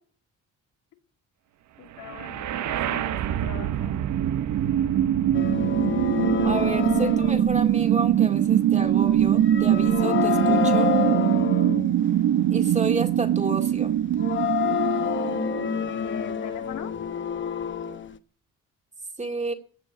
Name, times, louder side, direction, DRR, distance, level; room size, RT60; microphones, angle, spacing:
voice 1, 1.8-4.0 15.9-16.9, left 8 dB, 80° left, 4 dB, 2.9 m, -40 dB
sound 1, 2.0-16.0, right 11 dB, 70° right, 0.9 m, -23 dB
sound 2, 5.3-8.3 8.9-12.0 14.2-18.2, left 8 dB, 40° left, 1.0 m, -28 dB
voice 2, 6.4-10.9 12.5-14.0 19.2-19.5, right 3 dB, 25° right, 5 dB, 2.4 m, -31 dB
15.0 x 6.6 x 9.9 m, 0.44 s
cardioid pair, 90°, 30 cm